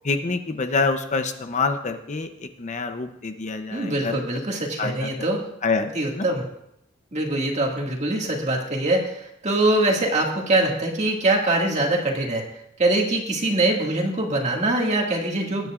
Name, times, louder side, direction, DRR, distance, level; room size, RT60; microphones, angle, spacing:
voice 1, 0.0-4.2 4.8-5.1 5.6-5.9 6.1-6.3, left 4 dB, 40° left, 8 dB, 0.7 m, -26 dB
voice 2, 3.7-5.4 5.9-6.4 7.1-12.4 12.8-15.7, right 2 dB, 35° right, 0 dB, 2.0 m, -23 dB
20.5 x 9.6 x 2.5 m, 0.78 s
head